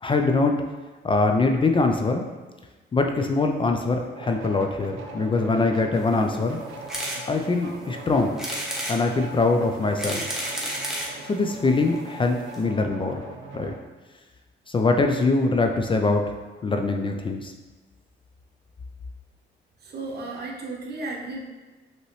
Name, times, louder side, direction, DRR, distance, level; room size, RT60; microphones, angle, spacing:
voice 1, 0.0-0.6 1.0-2.3 2.9-6.6 7.2-8.3 8.9-10.2 11.3-13.2 13.5-13.7 14.7-16.2 16.6-17.5, left 3 dB, 25° left, 4 dB, 0.4 m, -23 dB
sound 1, 4.2-13.8, right 2 dB, 85° right, 0.6 m, -40 dB
sound 2, 6.9-7.2 7.7-7.8 8.4-9.0 9.7-11.1 12.0-12.1 12.2-12.3 12.5-12.6, right 1 dB, ahead, 1.0 m, -30 dB
voice 2, 19.8-21.5, right 2 dB, 55° right, -1 dB, 1.0 m, -34 dB
5.5 x 2.9 x 3.1 m, 1.2 s
cardioid pair, 90°, 20 cm